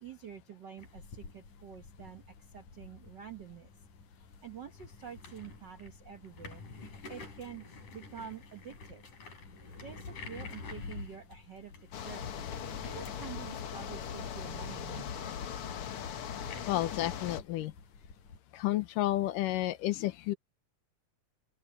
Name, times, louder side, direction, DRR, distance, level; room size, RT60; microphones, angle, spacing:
voice 1, 0.0-3.7 4.2-6.6 7.1-9.1 9.8-11.7 12.0-12.3 12.9-15.3, right 8 dB, 85° right, 0.9 m, -48 dB
sound 1, 0.8-18.4, left 4 dB, 70° left, 7.5 m, -49 dB
sound 2, 11.9-17.4, left 8 dB, 55° left, 1.7 m, -39 dB
voice 2, 16.7-17.7 18.5-20.4, left 15 dB, 90° left, 2.5 m, -31 dB
open air
omnidirectional pair, 3.7 m